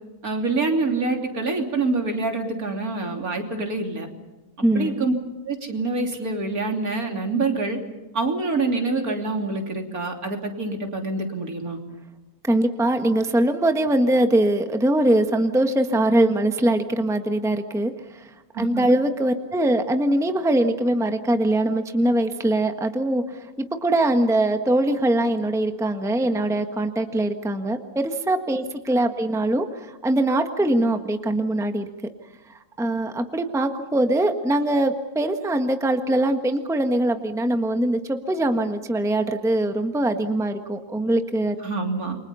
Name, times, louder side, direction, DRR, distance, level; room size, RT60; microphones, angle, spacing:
voice 1, 0.2-4.1 4.7-5.1 5.4-7.8 8.1-11.8 18.6-18.8 41.6-42.2, right 3 dB, 65° right, 3 dB, 3.6 m, -26 dB
voice 2, 4.6-5.1 12.4-31.9 32.5-41.5, right 1 dB, ahead, 6 dB, 1.3 m, -22 dB
29.0 x 24.0 x 5.6 m, 1.1 s
omnidirectional pair, 1.6 m